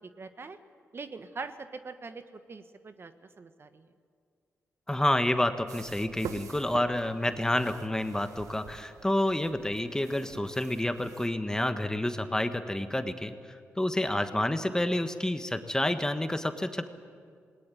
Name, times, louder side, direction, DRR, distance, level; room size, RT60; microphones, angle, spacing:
voice 1, 0.2-0.6 0.9-2.2 2.5-3.9, right 4 dB, 45° right, 10 dB, 1.3 m, -42 dB
voice 2, 4.9-13.3 13.8-16.9, left 1 dB, 10° left, 9 dB, 1.3 m, -29 dB
sound 1, 5.7-11.3, right 8 dB, 85° right, 0.9 m, -46 dB
19.5 x 18.5 x 9.2 m, 2.2 s
cardioid pair, 60°, 5 cm